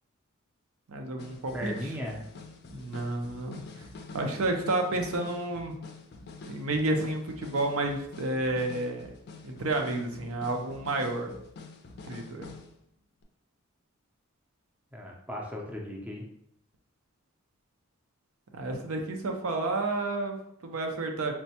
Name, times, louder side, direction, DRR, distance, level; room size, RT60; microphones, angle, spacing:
voice 1, 0.9-1.7 2.7-3.8 4.1-5.7 6.5-9.1 9.4-11.3 12.1-12.5 18.5-21.3, right 2 dB, 80° right, 3 dB, 0.5 m, -31 dB
Straight drum beats - Gretsch + Starphonic, 1.2-12.8 13.2-13.3, left 3 dB, 50° left, 0.4 m, -47 dB
voice 2, 1.5-2.3 14.9-16.2, left 1 dB, 5° right, -1 dB, 0.4 m, -36 dB
4.4 x 2.1 x 2.8 m, 0.74 s
head